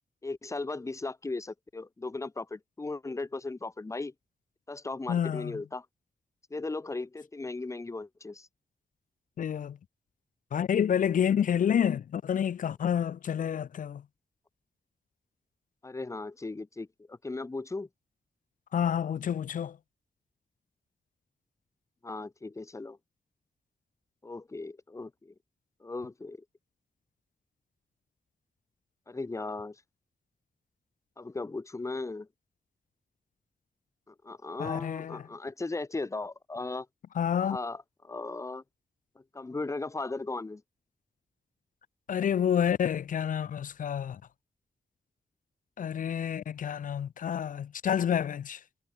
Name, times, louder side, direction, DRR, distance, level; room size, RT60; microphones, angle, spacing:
voice 1, 0.2-4.1 4.7-5.9 6.5-8.5 15.8-17.9 22.0-23.0 24.2-25.3 25.8-26.4 29.1-29.8 31.2-32.3 34.1-36.9 37.3-38.6 39.3-40.6, left 3 dB, 20° left, 2.5 m, -37 dB
voice 2, 5.1-5.5 9.4-9.8 10.5-14.0 18.7-19.8 34.6-35.2 37.2-37.6 42.1-44.2 45.8-48.6, left 8 dB, 70° left, 0.7 m, -29 dB
wide cardioid pair, 170°, 14 cm